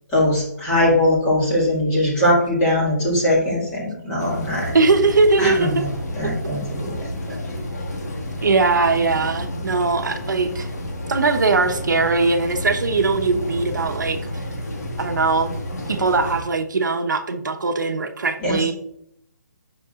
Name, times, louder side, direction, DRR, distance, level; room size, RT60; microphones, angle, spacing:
voice 1, 0.1-4.7 5.4-5.9 6.1-7.4 18.4-18.7, left 1 dB, 10° left, -5 dB, 1.8 m, -21 dB
sound 1, 4.2-16.4, left 1 dB, 60° left, 1.8 m, -30 dB
voice 2, 4.7-5.8 7.3-7.4 8.4-10.7 11.1-14.2 15.0-15.5 15.9-18.7, right 3 dB, 90° right, 5 dB, 1.0 m, -20 dB
8.6 x 6.1 x 2.4 m, 0.72 s
hypercardioid pair, 175°, 10 cm